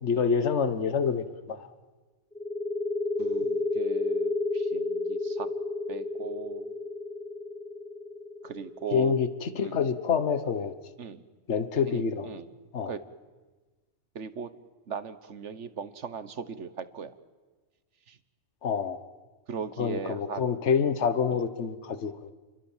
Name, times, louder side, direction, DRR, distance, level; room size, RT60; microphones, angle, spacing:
voice 1, 0.0-1.7 8.9-10.7 11.5-12.3 12.7-12.9 18.6-19.0 19.8-22.3, left 6 dB, 70° left, 11 dB, 1.5 m, -27 dB
sound 1, 2.3-9.8, left 2 dB, 5° left, 0.7 m, -31 dB
voice 2, 3.2-5.5 5.9-6.8 8.4-9.1 9.6-9.8 11.0-11.2 11.9-12.5 12.8-13.0 14.1-14.5 14.9-17.1 18.1-18.2 19.5-20.6 21.3-21.5, right 6 dB, 75° right, 13 dB, 1.5 m, -38 dB
29.5 x 22.5 x 7.4 m, 1.3 s
omnidirectional pair, 1.2 m